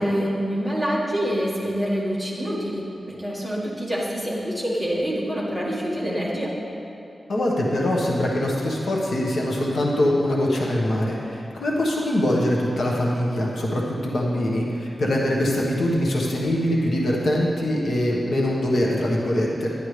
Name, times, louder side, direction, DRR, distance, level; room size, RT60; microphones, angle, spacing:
voice 1, 0.0-6.5, equal, ahead, -6 dB, 1.7 m, -26 dB
voice 2, 7.3-19.7, left 1 dB, 70° left, -3 dB, 1.3 m, -23 dB
10.5 x 10.5 x 3.3 m, 2.8 s
wide cardioid pair, 155°, 0 cm